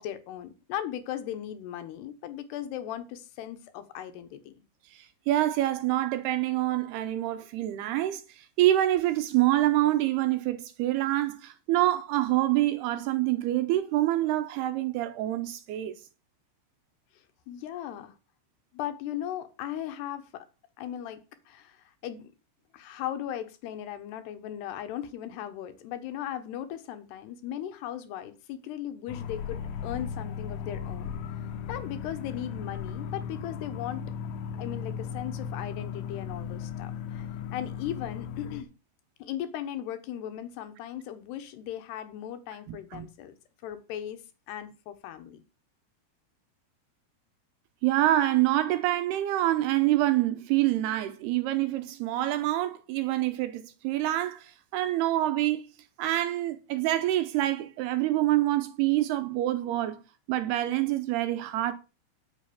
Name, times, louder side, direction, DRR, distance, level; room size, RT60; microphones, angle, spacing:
voice 1, 0.0-4.5 17.5-18.1 18.7-20.5 20.8-22.2 22.7-31.1 31.7-34.1 34.6-38.7 39.2-43.3 43.6-44.2 44.5-45.4, left 11 dB, 70° left, 3.0 m, -37 dB
voice 2, 4.9-16.0 42.7-43.1 47.8-55.7 56.0-60.0 60.3-61.7, right 14 dB, 80° right, 2.4 m, -26 dB
sound 1, 29.1-38.6, left 7 dB, 85° left, 3.8 m, -36 dB
11.0 x 7.3 x 6.9 m
omnidirectional pair, 5.6 m